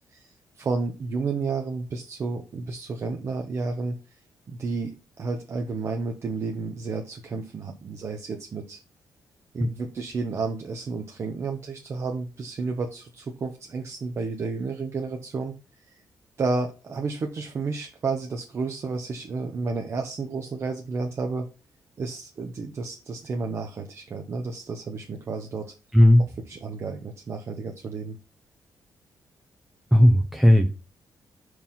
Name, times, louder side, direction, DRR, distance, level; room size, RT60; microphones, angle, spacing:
voice 1, 0.1-4.0 4.5-8.8 9.5-15.5 16.4-21.5 22.0-25.7 26.2-28.2, right 4 dB, 40° right, 3 dB, 0.9 m, -31 dB
voice 2, 29.9-30.7, left 1 dB, 5° right, 5 dB, 0.7 m, -15 dB
5.5 x 4.7 x 5.8 m, 0.31 s
wide cardioid pair, 145°, 7 cm